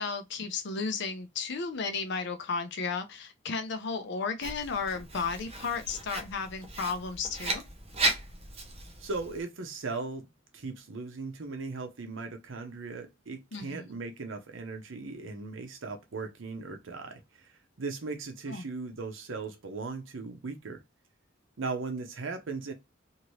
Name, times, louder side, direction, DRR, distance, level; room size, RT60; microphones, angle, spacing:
voice 1, 0.0-7.6 13.5-13.8 18.5-18.7, left 5 dB, 60° left, 0.5 m, -34 dB
Writing, 4.4-9.4, right 2 dB, 30° right, 0.7 m, -35 dB
voice 2, 9.0-10.3 10.5-17.5 17.8-20.8 21.6-22.7, right 3 dB, 75° right, 0.7 m, -38 dB
2.8 x 2.6 x 3.0 m
head